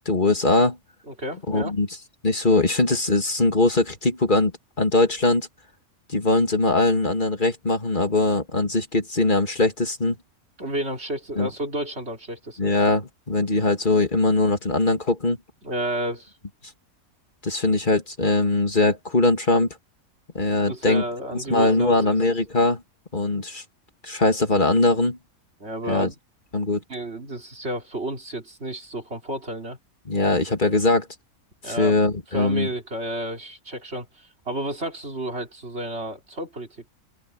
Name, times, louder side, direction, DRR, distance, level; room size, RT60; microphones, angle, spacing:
voice 1, 0.1-0.8 1.5-1.9 2.2-4.5 4.8-5.5 6.1-10.2 11.4-11.5 12.6-15.4 17.4-19.7 20.3-21.0 21.5-22.8 23.1-23.6 24.0-25.2 25.9-26.1 26.5-26.8 30.1-31.1 31.6-32.7, left 2 dB, 35° left, 2.7 m, -21 dB
voice 2, 1.1-1.7 10.6-12.6 15.6-16.3 20.7-22.2 25.6-26.2 26.9-29.8 31.6-32.0 32.3-36.9, right 1 dB, 45° right, 3.8 m, -31 dB
omnidirectional pair, 1.5 m